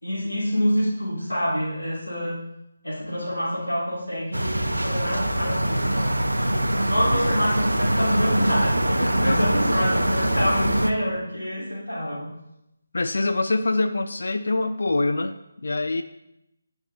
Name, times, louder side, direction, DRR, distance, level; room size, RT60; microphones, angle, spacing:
voice 1, 0.0-2.4 2.8-12.3, equal, 75° left, -5 dB, 2.2 m, -27 dB
sound 1, 4.3-10.9, right 1 dB, 80° right, 0.5 m, -23 dB
voice 2, 12.9-16.0, left 2 dB, 55° left, 8 dB, 0.3 m, -25 dB
9.1 x 4.4 x 2.7 m, 0.85 s
figure-of-eight pair, 155°, 0 cm